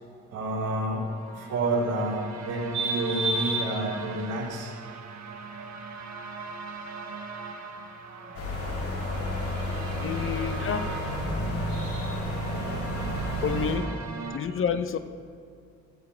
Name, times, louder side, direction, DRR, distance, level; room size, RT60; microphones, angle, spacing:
voice 1, 0.3-4.7 11.7-12.2, right 2 dB, 85° right, 3.0 m, -29 dB
sound 1, 0.9-14.4, right 4 dB, 65° right, 1.3 m, -40 dB
sound 2, 8.3-13.8, left 1 dB, 90° left, 3.0 m, -31 dB
voice 2, 10.0-11.0 13.4-14.0 14.3-15.0, left 7 dB, 45° left, 0.6 m, -29 dB
15.5 x 15.5 x 2.2 m
cardioid pair, 90°, 30 cm